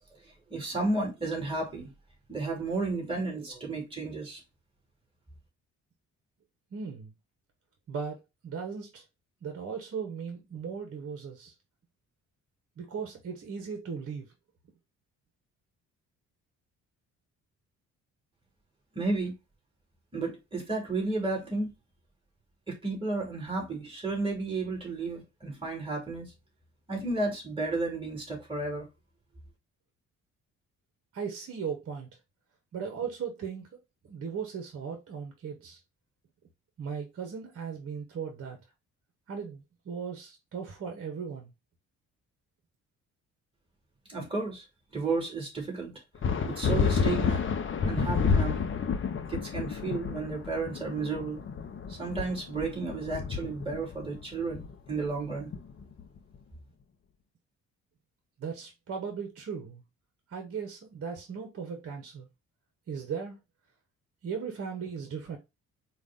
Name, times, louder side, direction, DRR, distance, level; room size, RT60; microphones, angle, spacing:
voice 1, 0.5-1.9 2.3-4.4 18.9-19.3 20.1-21.7 22.7-26.3 26.9-28.9 44.1-44.6 44.9-45.9 46.4-47.4 47.9-48.6 49.3-51.4 51.9-55.5, right 3 dB, 15° right, 2.9 m, -32 dB
voice 2, 6.7-7.1 7.9-9.0 9.4-11.5 12.8-14.3 31.1-32.1 32.7-33.7 34.0-35.8 36.8-38.6 39.3-41.5 58.4-59.8 60.3-62.3 62.9-63.4 64.2-65.4, right 6 dB, 50° right, 1.1 m, -37 dB
sound 1, 46.2-56.2, left 6 dB, 40° left, 0.7 m, -30 dB
5.0 x 2.4 x 3.7 m
cardioid pair, 90°, 30 cm